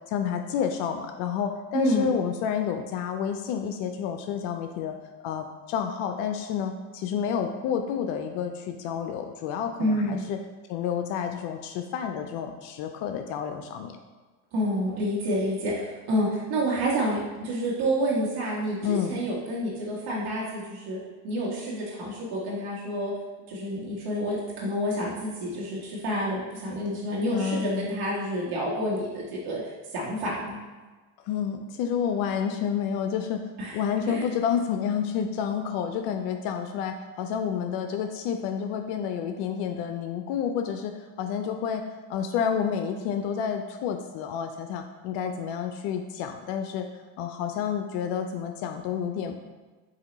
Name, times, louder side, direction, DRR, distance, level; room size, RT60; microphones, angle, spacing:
voice 1, 0.1-5.0 5.2-10.4 10.7-13.9 18.8-19.1 27.3-27.9 31.2-33.4 33.7-41.8 42.1-46.9 47.2-49.4, left 8 dB, 65° left, 6 dB, 0.5 m, -29 dB
voice 2, 1.7-2.1 9.8-10.2 14.5-23.1 23.5-30.6 33.6-33.8 34.1-34.3, equal, 60° right, -6 dB, 1.3 m, -29 dB
4.2 x 2.7 x 4.0 m, 1.3 s
supercardioid pair, 85°, 44 cm